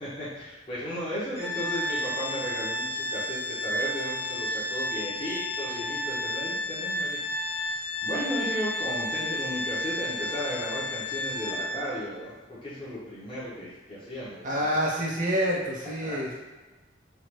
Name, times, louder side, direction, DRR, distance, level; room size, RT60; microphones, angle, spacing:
voice 1, 0.0-12.3 12.6-14.6 16.0-16.2, equal, 30° left, -10 dB, 0.8 m, -35 dB
Organ, 1.3-12.0, left 1 dB, 85° left, 1.2 m, -32 dB
voice 2, 14.4-16.4, equal, 45° right, -3 dB, 0.7 m, -27 dB
3.2 x 2.3 x 2.9 m, 1.2 s
head